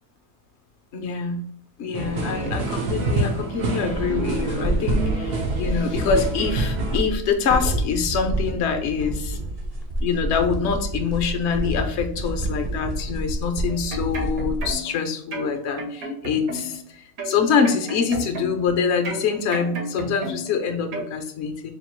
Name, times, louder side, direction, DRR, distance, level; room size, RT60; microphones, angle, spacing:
voice 1, 0.9-1.4 1.8-9.4 10.0-21.7, left 6 dB, 60° left, 6 dB, 0.8 m, -25 dB
sound 1, 1.9-7.0, right 2 dB, 85° right, 1.5 m, -27 dB
sound 2, 3.9-14.7, right 1 dB, 35° right, 0.6 m, -28 dB
sound 3, 13.7-15.0 15.3-16.8 17.2-18.7 19.0-20.6 20.9-21.1, right 1 dB, 70° right, 1.3 m, -33 dB
4.2 x 2.4 x 4.4 m, 0.64 s
omnidirectional pair, 1.6 m